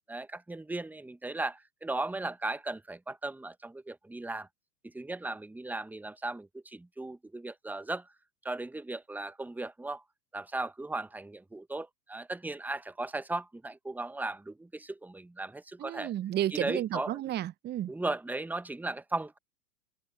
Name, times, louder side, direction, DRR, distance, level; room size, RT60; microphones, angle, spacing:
voice 1, 0.0-4.5 4.8-8.1 8.4-10.0 10.3-16.1 16.5-17.2 17.9-19.4, right 2 dB, 5° right, 1.1 m, -37 dB
voice 2, 15.8-17.9, right 12 dB, 20° right, 0.8 m, -32 dB
open air
hypercardioid pair, 100°, 49 cm